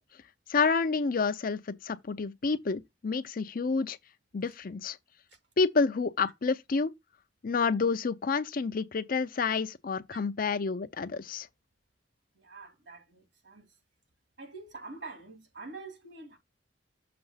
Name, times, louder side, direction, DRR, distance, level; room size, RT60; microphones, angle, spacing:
voice 1, 0.5-4.0 4.3-5.0 5.6-6.9 7.4-11.5, left 4 dB, 50° left, 0.5 m, -29 dB
voice 2, 12.4-13.7 14.4-16.4, right 3 dB, 65° right, 2.2 m, -46 dB
6.9 x 3.1 x 5.5 m
head